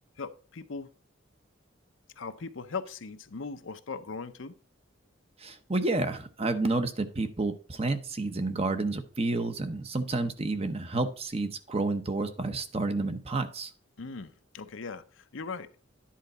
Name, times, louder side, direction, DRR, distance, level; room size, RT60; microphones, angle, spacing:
voice 1, 0.2-0.9 2.2-4.5 14.0-15.7, left 4 dB, 70° left, 10 dB, 0.7 m, -39 dB
voice 2, 5.4-13.7, right 2 dB, 30° right, 9 dB, 0.8 m, -30 dB
10.5 x 3.9 x 5.6 m, 0.39 s
head